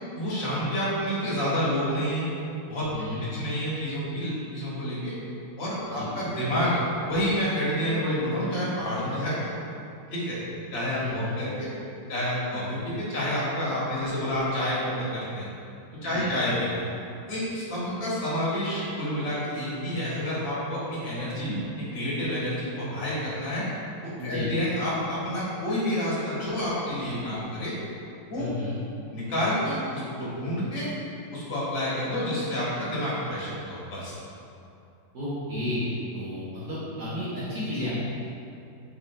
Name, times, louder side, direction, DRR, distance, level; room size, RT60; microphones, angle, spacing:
voice 1, 0.1-2.3 2.7-2.9 3.3-5.1 5.6-6.8 7.0-9.5 10.1-10.4 10.7-11.7 12.1-15.5 16.0-16.8 17.3-23.7 24.0-27.7 28.3-28.5 29.1-30.9 31.3-34.1, equal, 85° left, -8 dB, 2.1 m, -29 dB
voice 2, 2.9-3.2 5.8-6.1 11.0-11.3 16.0-16.3 24.2-24.5 28.3-28.7 35.1-37.9, left 1 dB, 65° right, -11 dB, 1.4 m, -32 dB
6.2 x 3.6 x 2.3 m, 2.6 s
omnidirectional pair, 2.0 m